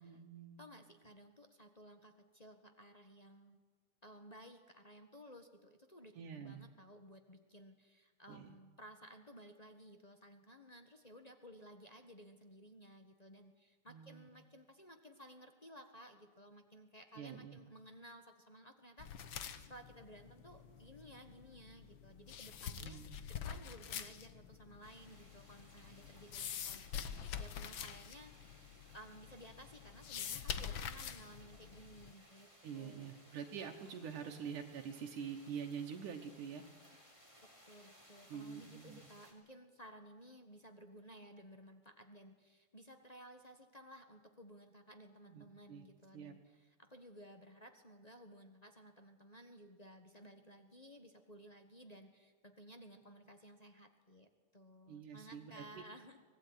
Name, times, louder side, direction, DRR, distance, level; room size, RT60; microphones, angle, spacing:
voice 1, 0.0-0.7 6.2-6.7 8.3-8.6 13.9-14.3 17.2-17.6 22.8-23.2 32.6-36.7 38.3-39.0 45.3-45.9 46.1-46.3 54.9-55.8, right 7 dB, 80° right, 2 dB, 2.8 m, -46 dB
voice 2, 0.6-3.6 4.0-23.0 23.3-27.0 27.4-28.3 28.9-32.5 32.7-33.2 37.6-56.2, equal, 35° left, 5 dB, 0.6 m, -57 dB
sound 1, 19.0-32.1, left 8 dB, 60° left, 1.4 m, -46 dB
sound 2, 24.8-39.3, equal, 10° left, 3.9 m, -63 dB
25.0 x 19.0 x 9.8 m, 1.3 s
omnidirectional pair, 3.5 m